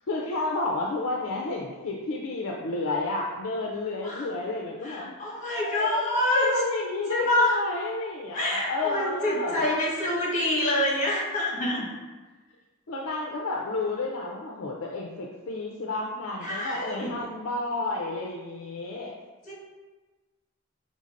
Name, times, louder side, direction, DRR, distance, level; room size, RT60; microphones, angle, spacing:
voice 1, 0.1-5.1 5.5-9.6 12.9-19.1, left 2 dB, 65° left, -1 dB, 0.4 m, -31 dB
voice 2, 4.8-6.5 7.1-7.6 8.3-11.9 16.4-17.2 19.4-19.5, left 1 dB, 35° left, -5 dB, 1.4 m, -26 dB
5.3 x 3.4 x 2.5 m, 1.3 s
head